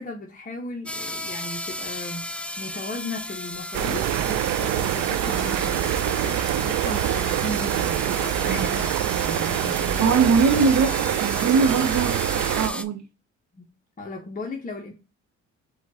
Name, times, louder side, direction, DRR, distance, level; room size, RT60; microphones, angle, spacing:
voice 1, 0.0-2.2 2.6-10.4 11.6-11.7 13.5-13.7 14.0-14.9, left 2 dB, 25° left, 1.1 m, -36 dB
sound 1, 0.9-12.8, left 1 dB, 5° left, 0.3 m, -34 dB
sound 2, 3.7-12.7, right 12 dB, 90° right, 0.5 m, -25 dB
voice 2, 3.9-4.2 8.2-8.7 10.0-12.3 12.5-13.0, right 5 dB, 65° right, 0.8 m, -22 dB
4.9 x 2.5 x 4.1 m
cardioid pair, 90°, 30 cm